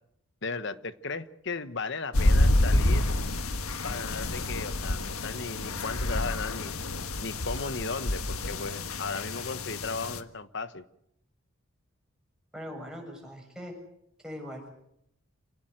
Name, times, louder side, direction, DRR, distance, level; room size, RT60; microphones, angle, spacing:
voice 1, 0.4-3.1 3.8-6.7 7.2-10.8, left 4 dB, 55° left, 13 dB, 1.2 m, -36 dB
sound 1, 2.1-10.2, left 1 dB, 85° left, 1.5 m, -28 dB
voice 2, 12.5-13.8 14.2-14.7, equal, 5° right, 0 dB, 6.7 m, -41 dB
27.5 x 18.0 x 7.9 m, 0.76 s
head